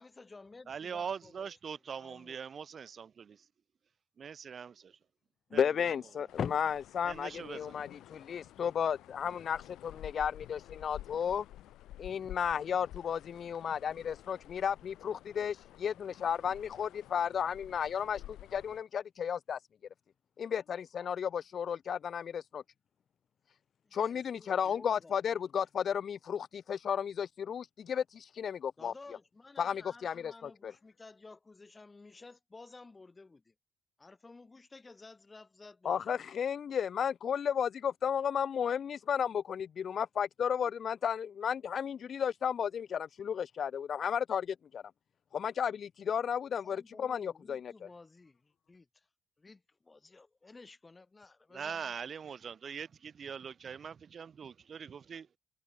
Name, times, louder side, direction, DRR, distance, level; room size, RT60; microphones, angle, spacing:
voice 1, 0.0-1.6 2.0-2.4 23.8-25.4 28.8-33.5 34.0-36.2 46.6-49.1 49.4-51.9, left 3 dB, 25° left, 2.6 m, -54 dB
voice 2, 0.7-3.1 4.2-5.0 5.5-5.7 7.0-7.8 51.5-55.3, right 7 dB, 50° right, 0.6 m, -42 dB
voice 3, 5.5-11.4 12.0-19.6 20.4-22.6 23.9-28.9 29.6-30.7 35.8-44.8 45.3-47.9, left 8 dB, 55° left, 0.4 m, -33 dB
sound 1, 6.3-18.8, left 14 dB, 85° left, 3.0 m, -51 dB
cardioid pair, 90°, 0 cm